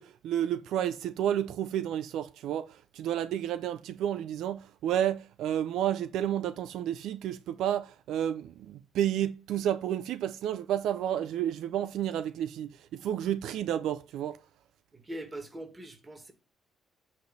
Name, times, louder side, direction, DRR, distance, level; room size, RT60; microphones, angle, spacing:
voice 1, 0.0-14.4, right 10 dB, 85° right, 0.4 m, -31 dB
voice 2, 14.9-16.3, right 1 dB, 20° right, 2.0 m, -42 dB
8.3 x 3.2 x 6.4 m
cardioid pair, 90°, 0 cm